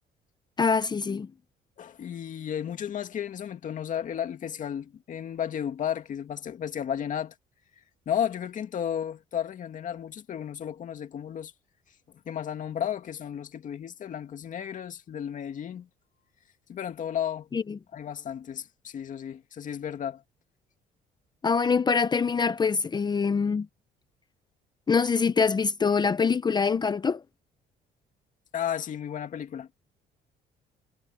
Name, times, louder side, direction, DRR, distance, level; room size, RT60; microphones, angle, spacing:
voice 1, 0.6-1.3 17.5-17.8 21.4-23.7 24.9-27.2, left 5 dB, 25° left, 0.7 m, -24 dB
voice 2, 1.8-7.3 8.1-11.5 12.3-15.9 16.7-17.5 17.9-20.2 28.5-29.7, left 9 dB, 50° left, 2.4 m, -33 dB
cardioid pair, 110°, 17 cm